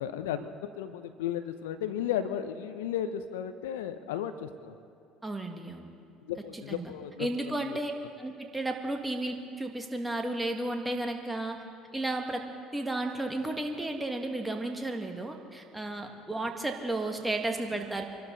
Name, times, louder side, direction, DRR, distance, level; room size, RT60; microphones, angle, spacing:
voice 1, 0.0-4.7 6.2-7.3 7.6-7.8, left 10 dB, 75° left, 11 dB, 0.7 m, -34 dB
voice 2, 5.2-5.9 6.5-6.9 7.2-7.9 8.2-11.6 11.9-12.5 12.7-18.0, right 2 dB, 10° right, 3 dB, 1.9 m, -33 dB
25.0 x 12.5 x 4.0 m, 2.7 s
hypercardioid pair, 60°, 0 cm